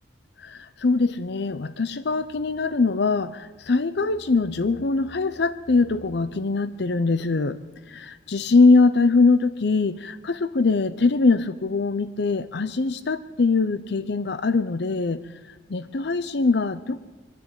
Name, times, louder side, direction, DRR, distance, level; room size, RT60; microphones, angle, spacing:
voice 1, 0.4-7.6 7.9-15.2 15.7-17.1, left 3 dB, 65° left, 14 dB, 0.6 m, -22 dB
23.0 x 13.0 x 9.0 m, 1.3 s
head